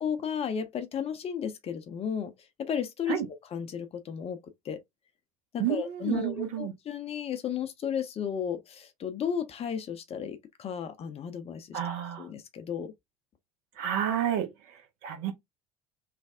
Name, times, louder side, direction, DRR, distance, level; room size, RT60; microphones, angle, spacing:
voice 1, 0.0-2.3 2.6-3.2 3.5-4.4 4.6-4.8 5.5-11.8 12.2-12.9, left 8 dB, 35° left, 0.8 m, -33 dB
voice 2, 5.6-6.7 11.7-12.3 13.8-15.3, right 10 dB, 55° right, 1.1 m, -30 dB
3.3 x 2.5 x 3.5 m
figure-of-eight pair, 65°, 18 cm